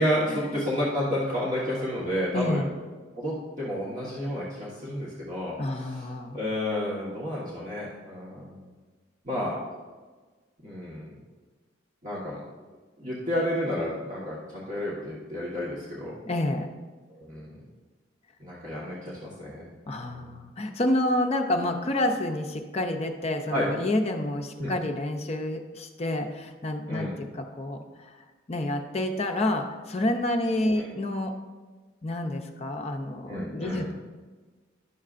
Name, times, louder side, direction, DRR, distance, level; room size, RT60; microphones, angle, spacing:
voice 1, 0.0-2.7 3.1-6.1 6.3-8.7 9.2-9.6 10.6-11.1 12.0-12.4 13.0-16.2 17.1-17.6 18.4-19.7 20.0-20.3 23.5-23.7 24.6-24.7 26.9-27.2 30.7-30.9 33.3-33.9, equal, 40° right, -7 dB, 1.3 m, -31 dB
voice 2, 2.3-2.7 5.6-6.4 16.3-16.7 19.9-28.2 28.5-31.3 32.0-33.9, left 1 dB, 30° left, 3 dB, 0.5 m, -29 dB
11.0 x 6.5 x 2.5 m, 1.3 s
head